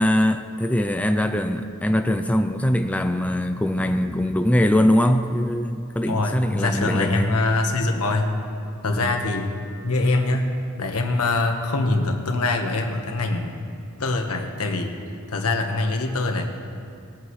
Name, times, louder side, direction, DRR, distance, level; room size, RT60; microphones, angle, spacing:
voice 1, 0.0-7.4 8.9-9.2, left 1 dB, 5° left, 7 dB, 0.4 m, -22 dB
voice 2, 6.0-8.3 8.8-9.5 9.8-10.5 10.8-13.6 14.0-14.9 15.3-16.4, left 2 dB, 90° left, 3 dB, 1.3 m, -23 dB
20.5 x 8.6 x 3.2 m, 2.4 s
head